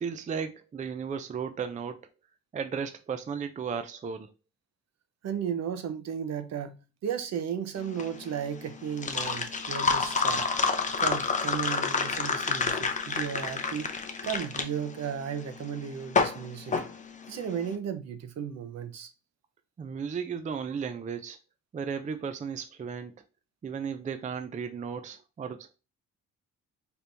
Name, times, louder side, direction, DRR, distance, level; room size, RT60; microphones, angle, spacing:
voice 1, 0.0-2.1 2.5-4.3 19.8-21.4 21.7-23.1 23.6-25.7, right 6 dB, 25° right, 0.4 m, -35 dB
voice 2, 5.2-6.8 7.0-10.5 11.0-14.0 14.2-16.8 17.3-19.1, right 8 dB, 60° right, 0.7 m, -34 dB
sound 1, 7.8-17.6, left 4 dB, 25° left, 0.6 m, -29 dB
4.4 x 3.3 x 2.6 m
cardioid pair, 90°, 30 cm